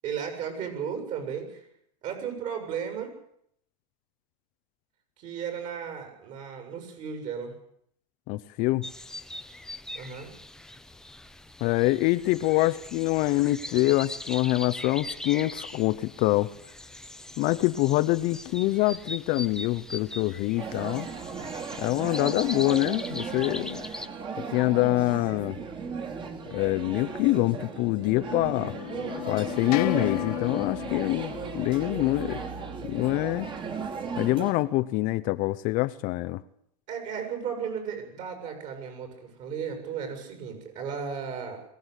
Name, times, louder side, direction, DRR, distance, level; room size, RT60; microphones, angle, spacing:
voice 1, 0.0-1.6 2.0-3.1 5.2-7.5 9.9-10.3 36.9-41.6, right 7 dB, 40° right, 6 dB, 7.5 m, -35 dB
voice 2, 8.3-8.9 11.6-16.5 17.4-21.1 21.8-23.9 24.4-25.6 26.5-28.7 29.3-32.4 32.8-33.5 34.2-36.4, left 18 dB, 45° left, 13 dB, 0.9 m, -25 dB
sound 1, 8.8-24.1, left 1 dB, 5° left, 0.9 m, -41 dB
sound 2, 20.6-34.5, right 5 dB, 25° right, 3.1 m, -36 dB
sound 3, 27.2-33.6, left 17 dB, 75° left, 0.8 m, -36 dB
22.0 x 17.5 x 8.3 m, 0.72 s
supercardioid pair, 145°, 20 cm